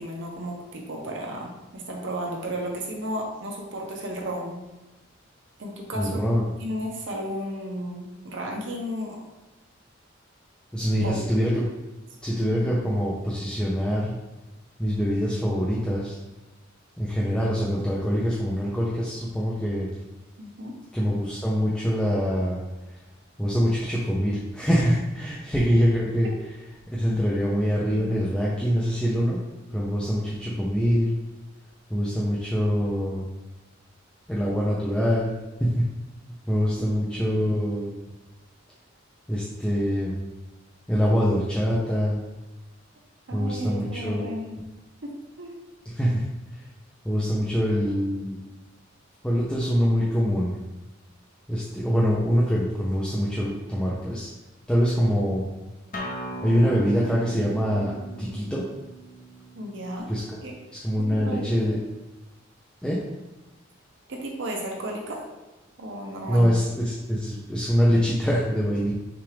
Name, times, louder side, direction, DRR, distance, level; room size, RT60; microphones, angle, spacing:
voice 1, 0.0-4.6 5.6-6.2 6.6-9.2 11.0-11.3 20.4-20.7 27.1-27.5 37.1-37.2 43.3-44.7 45.0-45.1 45.4-45.5 59.5-60.1 60.4-60.5 61.1-61.7 64.1-65.2 65.8-66.5, equal, 65° right, 0 dB, 0.8 m, -33 dB
voice 2, 5.9-6.5 10.7-11.6 12.2-14.1 14.8-16.2 17.0-19.9 20.9-22.6 23.4-26.3 26.9-29.4 29.7-31.1 31.9-33.3 34.3-35.3 35.6-35.7 36.5-38.0 39.3-40.2 40.9-42.2 43.3-44.2 45.9-46.2 46.5-46.6 47.0-48.4 49.2-50.5 51.5-54.3 54.7-55.5 56.4-58.7 60.1-60.4 60.7-61.8 62.8-63.0 66.3-68.9, equal, 5° left, -6 dB, 0.5 m, -24 dB
Acoustic guitar, 55.9-61.1, right 1 dB, 45° left, 0.7 m, -39 dB
5.9 x 2.4 x 3.3 m, 1.1 s
head